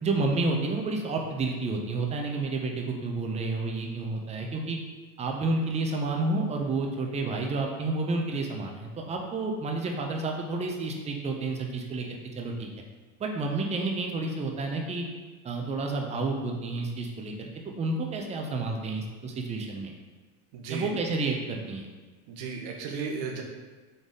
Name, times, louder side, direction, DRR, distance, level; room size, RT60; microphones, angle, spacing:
voice 1, 0.0-4.8 5.2-12.0 12.4-12.7 13.2-15.1 15.4-17.5 17.8-19.9 20.7-21.9, right 3 dB, 15° right, 2 dB, 0.5 m, -30 dB
voice 2, 20.5-20.9 22.3-23.4, right 5 dB, 65° right, 1 dB, 1.0 m, -34 dB
3.9 x 3.5 x 3.7 m, 1.3 s
supercardioid pair, 110°, 41 cm